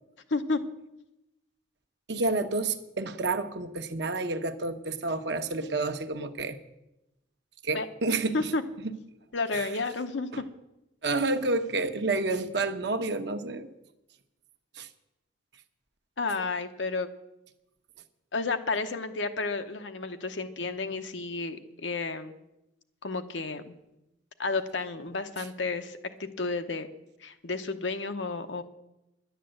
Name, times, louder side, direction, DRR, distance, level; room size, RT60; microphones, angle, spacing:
voice 1, 0.3-0.6 7.7-7.9 8.3-8.6 9.3-10.4 16.2-17.1 18.3-22.3 23.0-23.7 24.4-26.9 27.2-28.6, left 3 dB, 85° left, 8 dB, 1.0 m, -31 dB
voice 2, 2.1-6.6 7.6-8.5 8.8-9.0 9.5-9.7 10.3-10.4 11.0-13.7 14.7-14.9 25.4-25.5, right 3 dB, 65° right, 7 dB, 0.9 m, -29 dB
11.0 x 9.3 x 7.7 m, 0.92 s
head